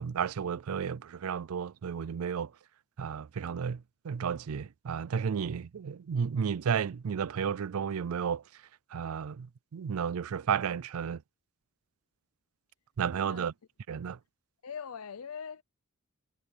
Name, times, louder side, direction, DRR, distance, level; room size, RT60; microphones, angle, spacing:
voice 1, 0.0-2.5 3.0-8.6 8.9-11.2 13.0-13.5 13.9-14.2, right 7 dB, 80° right, 0.4 m, -33 dB
voice 2, 14.6-15.6, left 6 dB, 85° left, 0.6 m, -41 dB
head